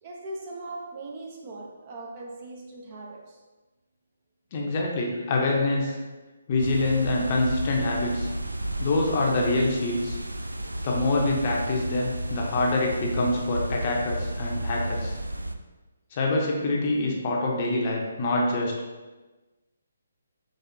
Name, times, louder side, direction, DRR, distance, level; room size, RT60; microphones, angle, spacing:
voice 1, 0.0-3.4 5.1-5.4 5.9-6.0, right 2 dB, 30° right, -1 dB, 0.6 m, -40 dB
voice 2, 4.5-6.0 6.5-8.3 8.8-10.2 10.8-15.2 16.1-18.7, left 2 dB, 35° left, -1 dB, 0.7 m, -25 dB
sound 1, 6.6-15.5, right 1 dB, 80° right, 0.3 m, -32 dB
4.2 x 3.3 x 2.7 m, 1.2 s
figure-of-eight pair, 140°, 0 cm